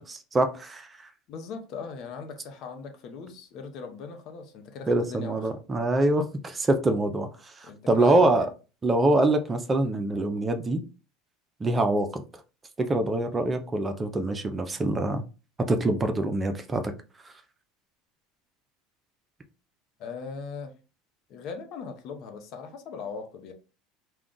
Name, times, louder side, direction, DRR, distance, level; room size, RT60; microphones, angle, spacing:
voice 1, 0.1-0.9 4.9-8.5 8.8-10.8 11.6-12.2 12.8-15.2 15.7-16.8, right 2 dB, 20° right, 0.5 m, -25 dB
voice 2, 1.3-5.5 7.6-8.5 20.0-20.7 21.3-23.5, left 5 dB, 55° left, 0.7 m, -39 dB
2.4 x 2.2 x 3.7 m
hypercardioid pair, 95°, 0 cm